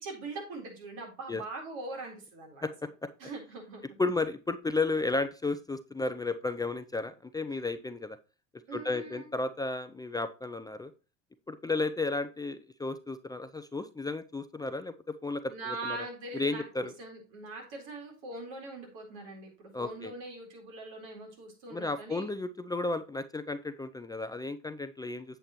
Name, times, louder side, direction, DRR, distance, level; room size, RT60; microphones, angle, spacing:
voice 1, 0.0-2.6 3.2-3.8 8.7-9.3 15.5-22.3, right 3 dB, 65° right, 1 dB, 4.0 m, -42 dB
voice 2, 4.0-8.2 8.7-10.9 11.5-14.9 15.2-16.0 16.3-16.9 19.7-20.1 21.7-25.4, left 3 dB, 10° left, 10 dB, 0.5 m, -33 dB
8.4 x 7.7 x 3.0 m, 0.32 s
hypercardioid pair, 70°, 34 cm